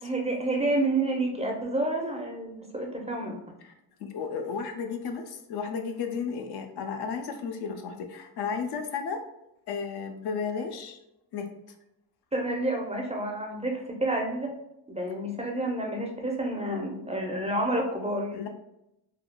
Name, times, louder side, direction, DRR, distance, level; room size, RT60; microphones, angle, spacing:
voice 1, 0.0-3.4 12.3-14.5 14.9-18.5, right 1 dB, 15° right, 1 dB, 0.5 m, -29 dB
voice 2, 4.0-9.2 9.7-11.0 11.3-11.5 18.3-18.5, left 5 dB, 60° left, 5 dB, 0.6 m, -33 dB
3.5 x 2.2 x 2.2 m, 0.84 s
supercardioid pair, 70°, 45 cm